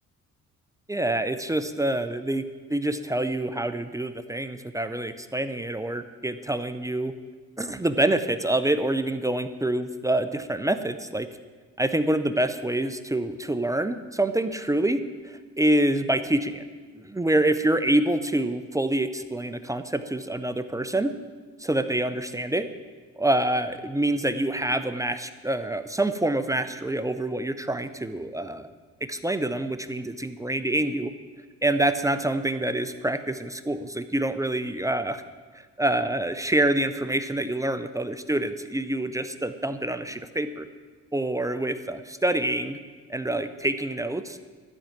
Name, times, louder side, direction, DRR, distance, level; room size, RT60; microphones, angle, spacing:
voice 1, 0.9-2.4 2.7-7.1 7.6-11.3 11.8-16.6 16.9-21.1 21.6-22.7 23.2-28.7 29.0-31.1 31.6-35.2 35.8-40.7 41.1-42.8 43.1-44.4, right 1 dB, 10° right, 10 dB, 0.6 m, -26 dB
12.5 x 5.7 x 8.9 m, 1.5 s
cardioid pair, 90°, 30 cm